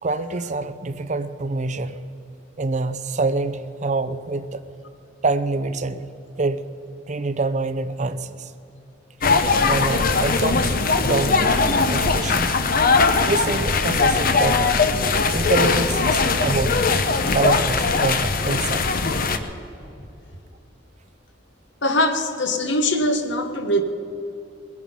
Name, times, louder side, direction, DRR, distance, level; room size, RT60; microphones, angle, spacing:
voice 1, 0.0-2.0 2.6-4.6 5.2-6.1 6.4-6.6 7.1-8.5 9.7-10.7 11.0-12.6 13.2-14.8 15.3-16.8 17.3-18.9, right 3 dB, 40° right, 12 dB, 0.6 m, -26 dB
sound 1, 9.2-19.4, left 4 dB, 50° left, 0.9 m, -20 dB
voice 2, 21.8-23.8, left 1 dB, 65° left, 7 dB, 1.3 m, -22 dB
20.0 x 11.0 x 5.6 m, 2.9 s
head